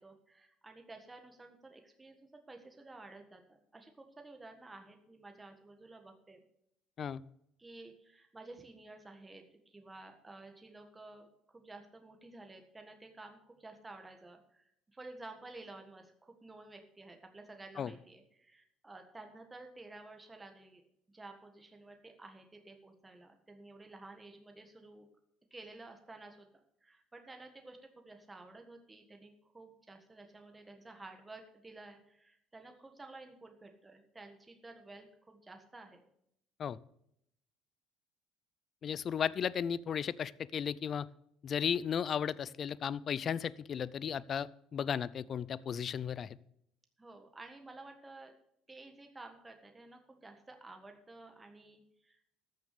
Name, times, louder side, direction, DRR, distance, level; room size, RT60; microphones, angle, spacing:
voice 1, 0.0-6.4 7.6-20.8 21.1-25.1 25.5-26.5 26.8-36.0 47.0-48.3 48.7-52.2, right 2 dB, 15° right, 4 dB, 1.6 m, -52 dB
voice 2, 38.8-41.1 41.4-46.4, left 8 dB, 40° left, 20 dB, 0.5 m, -35 dB
14.0 x 6.5 x 6.7 m, 0.75 s
cardioid pair, 115°, 0 cm